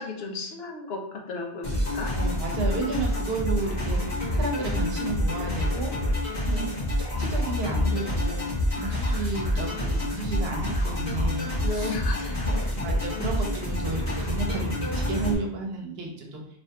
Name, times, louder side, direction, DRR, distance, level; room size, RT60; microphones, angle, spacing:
voice 1, 0.0-2.1 6.4-6.8 11.6-12.7, left 3 dB, 80° left, 1 dB, 0.9 m, -34 dB
sound 1, 1.6-15.3, left 1 dB, 35° left, 1.6 m, -27 dB
voice 2, 2.0-6.7 7.0-8.5 8.7-11.9 12.7-16.4, right 3 dB, 80° right, 1 dB, 0.9 m, -33 dB
3.3 x 2.8 x 2.8 m, 0.68 s
omnidirectional pair, 1.0 m